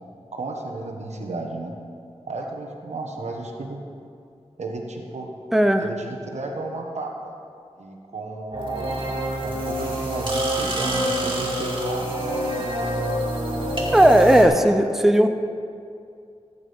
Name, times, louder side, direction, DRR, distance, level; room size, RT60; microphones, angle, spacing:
voice 1, 0.3-1.8 2.3-3.8 4.6-5.3 5.8-6.1 6.3-7.4 7.8-12.2 12.5-12.7 13.6-13.7 14.0-14.1 14.5-14.7, right 2 dB, 80° right, 1 dB, 1.3 m, -33 dB
voice 2, 5.5-5.9 13.9-15.3, right 1 dB, 5° right, 6 dB, 0.6 m, -16 dB
sound 1, 8.5-14.4, right 1 dB, 45° right, 2.3 m, -26 dB
16.5 x 8.5 x 3.6 m, 2.4 s
wide cardioid pair, 75°, 11 cm